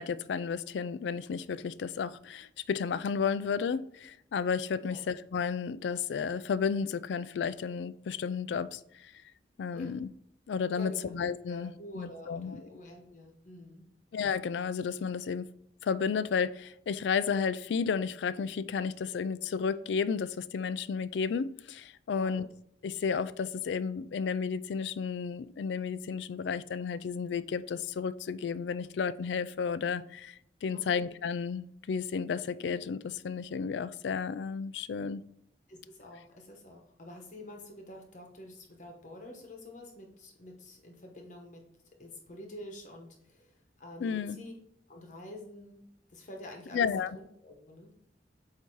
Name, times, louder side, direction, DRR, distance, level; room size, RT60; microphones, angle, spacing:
voice 1, 0.0-9.1 9.6-10.1 10.5-12.6 14.1-15.5 15.8-22.5 22.8-35.2 44.0-44.4 46.7-47.2, left 6 dB, 85° left, 0.3 m, -32 dB
voice 2, 10.8-11.1 11.5-13.9 22.1-22.4 30.7-31.1 35.7-41.6 42.0-44.5 44.9-45.8 46.1-46.9 47.1-47.9, left 1 dB, 45° left, 1.0 m, -48 dB
8.2 x 2.8 x 4.6 m
head